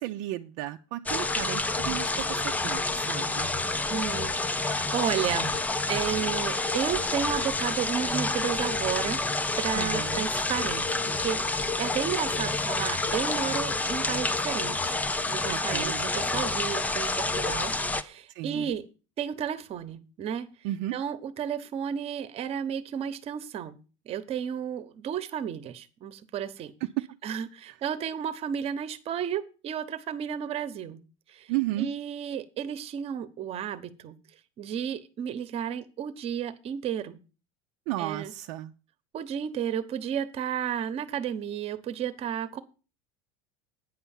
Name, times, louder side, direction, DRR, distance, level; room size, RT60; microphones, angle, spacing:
voice 1, 0.0-3.5 9.7-10.3 15.5-16.1 18.3-18.7 20.6-20.9 26.8-27.2 27.7-27.8 31.5-31.9 37.9-38.7, right 16 dB, 60° right, 6 dB, 0.6 m, -33 dB
sound 1, 1.1-18.0, left 3 dB, 10° left, 0.5 m, -28 dB
voice 2, 3.9-5.6 5.9-9.2 9.6-15.0 15.3-18.8 19.2-20.5 20.9-23.8 24.1-26.7 27.2-31.0 31.3-31.5 31.8-34.2 34.6-37.2 38.0-38.3 39.1-42.6, right 9 dB, 35° right, 14 dB, 1.0 m, -32 dB
9.4 x 5.6 x 7.2 m, 0.34 s
supercardioid pair, 130°, 16 cm